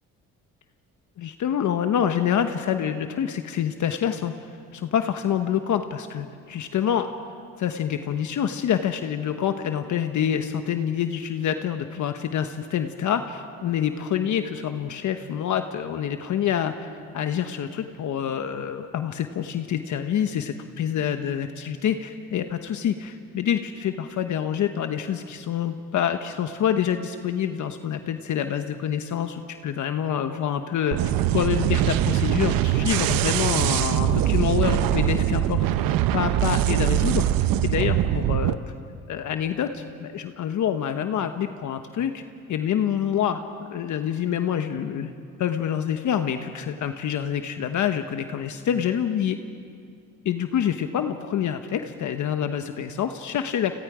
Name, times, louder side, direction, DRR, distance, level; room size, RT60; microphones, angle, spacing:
voice 1, 1.2-4.3 4.7-7.1 7.6-16.9 17.1-37.3 37.6-38.6 39.1-42.2 42.5-45.1 45.4-49.4 50.2-53.7, left 9 dB, 60° left, 8 dB, 1.1 m, -26 dB
sound 1, 30.9-38.5, right 12 dB, 80° right, 0.8 m, -22 dB
30.0 x 26.5 x 5.0 m, 2.3 s
cardioid pair, 115°, 34 cm